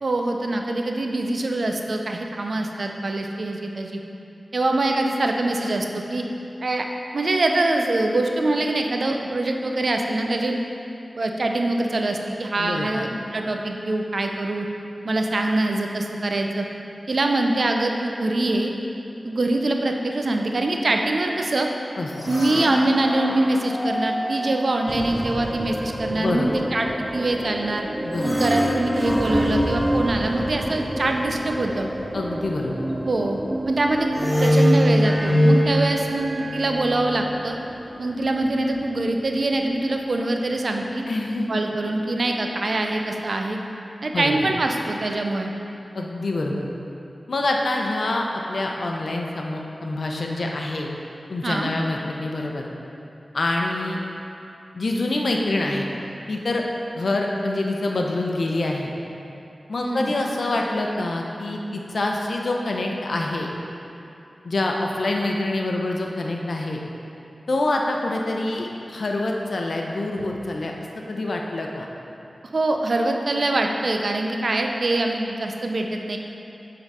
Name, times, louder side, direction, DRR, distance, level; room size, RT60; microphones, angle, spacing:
voice 1, 0.0-4.0 4.5-6.2 6.6-6.9 7.1-10.6 11.2-14.7 15.0-16.7 17.1-18.7 19.2-21.7 22.3-27.9 28.2-31.9 33.1-33.4 33.6-34.1 34.4-37.6 38.0-41.0 41.5-43.6 44.0-45.5 51.4-51.7 59.8-60.1 72.5-76.2, right 2 dB, 70° right, 3 dB, 0.6 m, -24 dB
voice 2, 12.6-13.0 22.0-22.4 26.2-26.6 28.0-28.4 32.1-32.9 41.1-41.6 44.1-44.5 45.9-46.7 47.3-50.9 51.3-52.7 53.3-54.0 54.7-55.9 56.3-56.6 57.0-58.9 59.7-63.5 64.4-66.8 67.5-70.7 71.1-71.9, left 2 dB, 75° left, 0 dB, 0.7 m, -26 dB
sound 1, 22.2-24.8 28.1-31.2 34.1-37.3, equal, 30° left, 1.5 m, -23 dB
sound 2, 24.9-43.4, right 1 dB, 15° right, 0.7 m, -32 dB
8.0 x 3.9 x 5.5 m, 2.8 s
cardioid pair, 55°, 0 cm